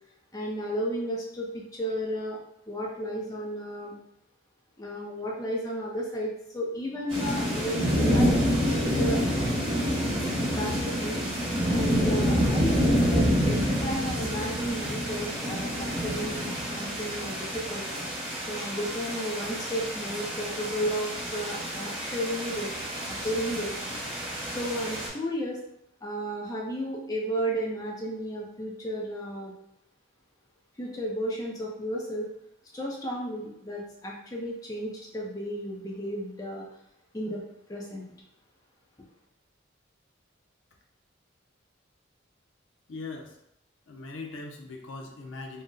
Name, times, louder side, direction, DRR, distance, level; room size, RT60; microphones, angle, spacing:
voice 1, 0.3-2.4 2.7-3.9 4.8-9.2 10.5-11.2 11.7-17.9 18.5-22.7 23.1-23.8 24.5-25.6 26.0-29.5 30.8-32.3 32.7-36.7 37.1-37.4 37.7-38.1, equal, 20° left, -3 dB, 0.4 m, -33 dB
sound 1, 7.1-25.1, equal, 30° right, 1.0 m, -28 dB
voice 2, 42.9-43.4 43.9-45.6, left 3 dB, 75° left, 2 dB, 0.5 m, -40 dB
2.7 x 2.0 x 3.6 m, 0.78 s
head